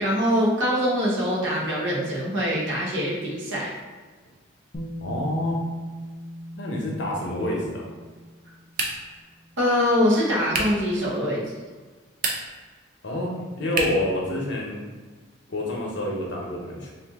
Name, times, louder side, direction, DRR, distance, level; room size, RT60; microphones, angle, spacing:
voice 1, 0.0-3.7 9.6-11.5, equal, 70° right, -5 dB, 0.9 m, -23 dB
Bass guitar, 4.7-10.8, equal, 30° left, 0.4 m, -40 dB
voice 2, 5.0-5.6 6.5-7.9 13.0-14.8 15.5-16.9, left 1 dB, 60° left, -2 dB, 0.7 m, -28 dB
sound 1, 8.7-9.2 10.5-10.9 12.1-12.7 13.7-14.1, right 3 dB, 45° right, 0.4 m, -28 dB
2.6 x 2.5 x 3.5 m, 1.4 s
head